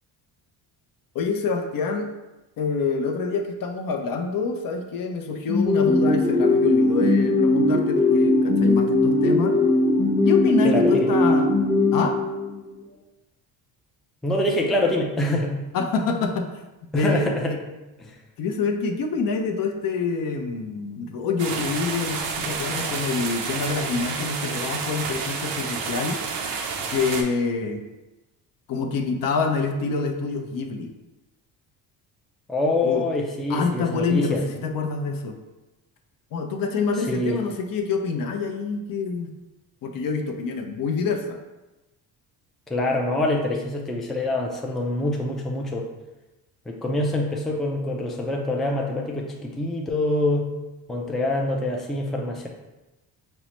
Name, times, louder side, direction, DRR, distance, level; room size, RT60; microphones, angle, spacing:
voice 1, 1.1-2.1 2.6-9.6 10.2-11.5 11.9-12.2 15.7-16.5 17.0-17.6 18.4-26.2 26.9-27.8 28.7-30.9 32.8-33.1 33.5-35.4 36.3-39.3 39.8-41.4, left 4 dB, 55° left, 5 dB, 0.6 m, -26 dB
sound 1, 5.5-12.7, left 2 dB, 25° left, 0.8 m, -20 dB
voice 2, 10.6-11.1 14.2-15.5 16.9-17.5 18.0-18.1 32.5-34.4 37.1-37.4 42.7-45.9 46.7-50.5 50.9-52.5, left 1 dB, ahead, 0 dB, 0.4 m, -25 dB
sound 2, 21.4-27.2, right 5 dB, 85° right, 0.6 m, -30 dB
5.4 x 2.1 x 3.0 m, 1.0 s
cardioid pair, 90°, 42 cm